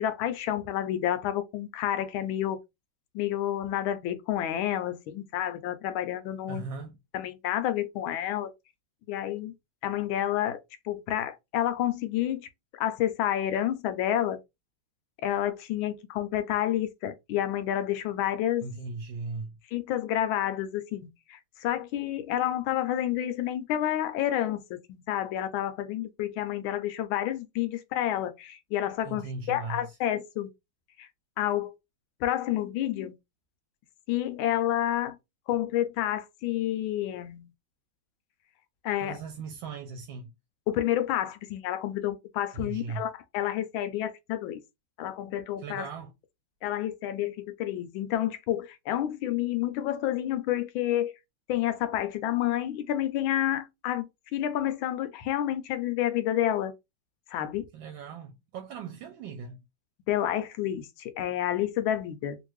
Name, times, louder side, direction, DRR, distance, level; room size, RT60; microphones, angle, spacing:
voice 1, 0.0-2.6 3.1-6.6 7.1-8.5 9.1-9.5 9.8-10.6 10.8-12.5 12.8-14.4 15.2-18.7 19.7-30.5 31.0-31.1 31.4-31.7 32.2-33.1 34.1-35.2 35.5-37.5 38.8-39.2 40.7-44.6 45.0-45.9 46.6-51.1 51.5-56.7 57.3-57.7 60.1-62.4, left 12 dB, 85° left, 1.4 m, -29 dB
voice 2, 6.5-6.9 18.6-19.6 29.0-30.0 39.0-40.3 42.5-43.1 45.6-46.1 57.7-59.6, right 4 dB, 80° right, 1.3 m, -38 dB
3.3 x 2.5 x 3.0 m
omnidirectional pair, 2.1 m